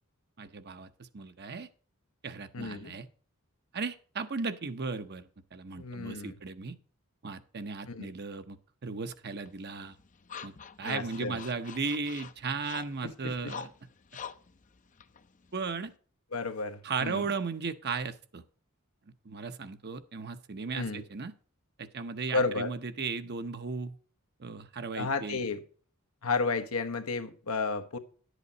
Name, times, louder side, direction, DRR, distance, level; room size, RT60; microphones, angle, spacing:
voice 1, 0.4-1.7 2.2-3.1 3.7-6.8 7.2-10.0 10.4-13.7 15.5-15.9 16.8-18.4 19.2-21.3 21.8-24.0 24.4-25.4, right 4 dB, 50° right, 0.8 m, -36 dB
voice 2, 2.5-2.9 5.8-6.3 7.9-8.1 10.8-11.4 13.0-13.3 16.3-17.3 20.7-21.0 22.3-22.7 24.9-25.6 26.2-28.0, left 4 dB, 85° left, 1.2 m, -32 dB
sound 1, 9.5-16.0, left 7 dB, 35° left, 0.6 m, -47 dB
10.5 x 8.1 x 4.0 m
head